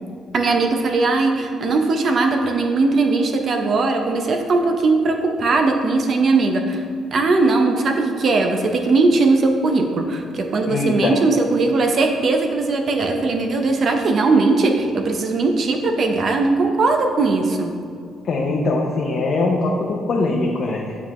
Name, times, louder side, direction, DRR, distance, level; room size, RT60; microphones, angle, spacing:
voice 1, 0.3-6.8 7.1-17.7, right 3 dB, 55° right, 4 dB, 0.5 m, -19 dB
voice 2, 10.7-11.1 18.2-21.0, left 3 dB, 55° left, -2 dB, 0.7 m, -21 dB
8.7 x 3.5 x 3.1 m, 2.4 s
cardioid pair, 90°, 0 cm